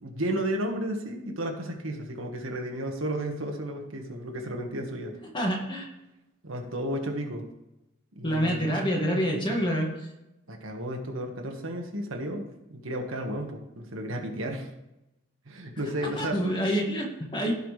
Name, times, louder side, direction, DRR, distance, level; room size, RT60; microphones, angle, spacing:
voice 1, 0.0-5.2 6.4-7.4 8.1-8.8 10.5-14.7 15.4-16.4, right 1 dB, 85° right, 3 dB, 1.6 m, -33 dB
voice 2, 5.3-5.9 8.2-9.9 16.1-17.5, equal, 25° left, -1 dB, 2.0 m, -27 dB
16.0 x 5.7 x 3.3 m, 0.91 s
head